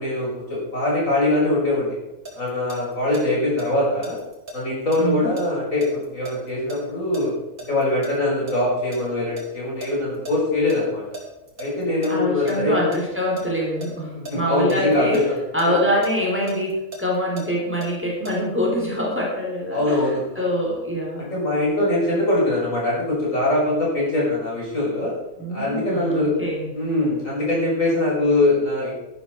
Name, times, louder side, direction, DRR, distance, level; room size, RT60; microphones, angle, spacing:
voice 1, 0.0-2.0 2.3-4.2 4.5-7.3 7.6-11.0 11.6-12.8 14.1-15.2 15.7-15.8 19.7-20.4 21.3-25.1 25.5-26.3 26.7-28.9, left 2 dB, 75° left, -5 dB, 6.5 m, -22 dB
sound 1, 1.9-3.2 3.6-8.2 8.5-10.3 10.7-10.8 11.1-12.6 12.9-13.4 13.8-15.7 16.0-18.3, right 1 dB, 80° right, 3.3 m, -37 dB
voice 2, 5.0-5.3 12.1-15.2 15.5-20.0 20.4-21.3 25.4-26.7, equal, 10° right, -3 dB, 3.8 m, -24 dB
12.5 x 12.0 x 4.6 m, 1.0 s
omnidirectional pair, 1.4 m